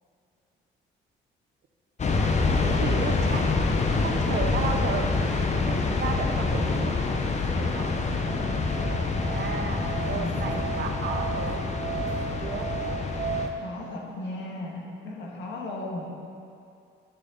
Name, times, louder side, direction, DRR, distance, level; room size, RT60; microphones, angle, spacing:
sound 1, 2.0-13.5, left 3 dB, 35° left, 0.8 m, -26 dB
voice 1, 2.6-3.4 4.0-5.1 5.6-6.9 7.6-7.9 9.2-11.6 12.4-12.7, right 5 dB, 60° right, 4 dB, 0.9 m, -34 dB
Musical instrument, 7.8-13.5, right 6 dB, 80° right, 1.0 m, -35 dB
voice 2, 10.1-10.4 13.6-16.1, left 1 dB, 65° left, -1 dB, 1.6 m, -36 dB
11.0 x 6.4 x 3.9 m, 2.5 s
cardioid pair, 90°, 20 cm